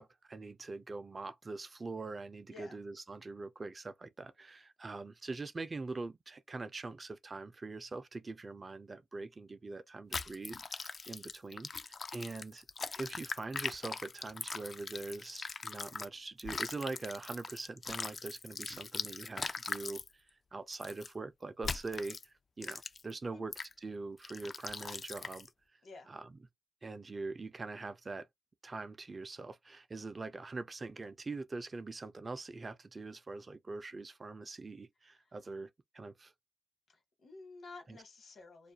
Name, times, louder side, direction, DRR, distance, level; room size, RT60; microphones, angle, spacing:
voice 1, 0.0-12.7 12.9-23.5 23.8-25.5 26.1-26.2 26.8-28.3 28.6-36.3 37.9-38.0, right 3 dB, 35° right, 0.4 m, -43 dB
voice 2, 2.5-2.8 23.2-23.4 25.8-26.1 35.1-35.3 36.9-38.7, left 3 dB, 65° left, 1.2 m, -52 dB
sound 1, 10.1-16.1 16.4-20.1 20.7-21.1 21.6-22.2 22.6-23.1 23.5-23.7 24.2-25.5, left 4 dB, 45° left, 0.3 m, -41 dB
2.4 x 2.1 x 2.8 m
cardioid pair, 65°, 0 cm